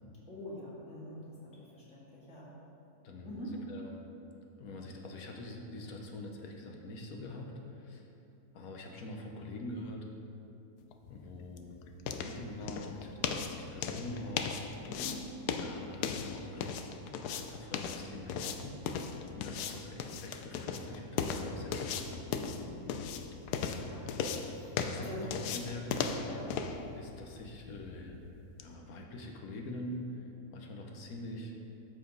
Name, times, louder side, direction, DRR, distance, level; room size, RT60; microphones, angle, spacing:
voice 1, 0.3-2.5 3.2-3.6 14.8-15.2 22.6-22.8 23.2-24.0 24.5-25.5 26.2-26.5, left 1 dB, 50° left, -8 dB, 2.5 m, -45 dB
voice 2, 3.0-4.0 4.6-8.1 8.5-10.1 11.1-11.7 12.1-14.9 15.5-16.9 17.4-22.5 24.8-26.1 26.9-28.2 28.6-31.5, left 1 dB, 70° left, 2 dB, 1.4 m, -44 dB
sound 1, 10.9-28.7, left 6 dB, 90° left, 1.1 m, -38 dB
13.0 x 5.0 x 3.9 m, 2.8 s
omnidirectional pair, 1.6 m